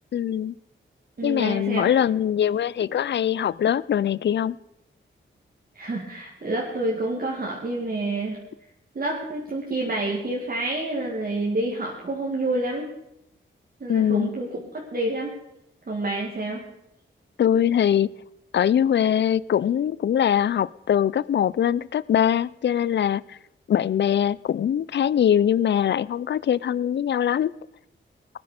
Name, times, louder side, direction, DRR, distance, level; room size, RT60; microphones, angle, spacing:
voice 1, 0.1-0.6 1.2-4.6 13.9-14.3 17.4-18.1 18.5-23.4 23.7-27.5, left 9 dB, 60° left, 20 dB, 0.4 m, -22 dB
voice 2, 1.2-1.9 5.7-8.4 8.9-12.9 13.8-14.6 14.9-15.3 15.9-16.6, right 2 dB, 50° right, -3 dB, 2.2 m, -28 dB
18.5 x 9.8 x 5.1 m, 0.83 s
cardioid pair, 75°, 20 cm